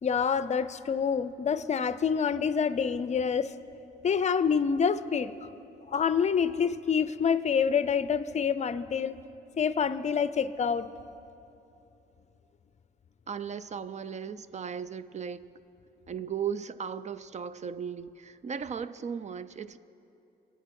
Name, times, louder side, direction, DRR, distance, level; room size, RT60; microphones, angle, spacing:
voice 1, 0.0-3.5 4.0-5.3 5.9-9.2 9.6-10.9, left 6 dB, 35° left, 14 dB, 0.6 m, -27 dB
voice 2, 13.3-15.4 16.1-19.8, right 7 dB, 35° right, 15 dB, 0.5 m, -36 dB
23.0 x 8.5 x 5.4 m, 2.9 s
cardioid pair, 90°, 20 cm